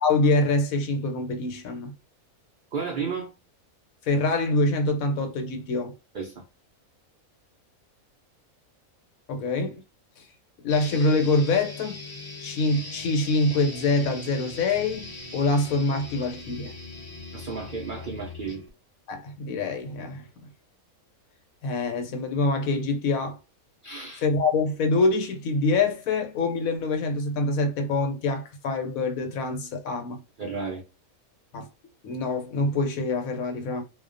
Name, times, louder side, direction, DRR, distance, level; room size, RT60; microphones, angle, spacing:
voice 1, 0.0-1.9 4.1-5.9 9.3-9.8 10.2-10.3 10.6-12.0 12.4-16.7 19.1-20.2 21.6-23.4 24.2-30.2 31.5-31.7 32.0-33.8, left 3 dB, 75° left, 1.1 m, -25 dB
voice 2, 2.7-3.3 6.1-6.4 17.3-18.6 23.8-24.2 30.4-30.8, right 5 dB, 75° right, 0.4 m, -33 dB
sound 1, 10.7-18.7, left 2 dB, 25° left, 0.6 m, -40 dB
2.4 x 2.1 x 2.4 m
omnidirectional pair, 1.5 m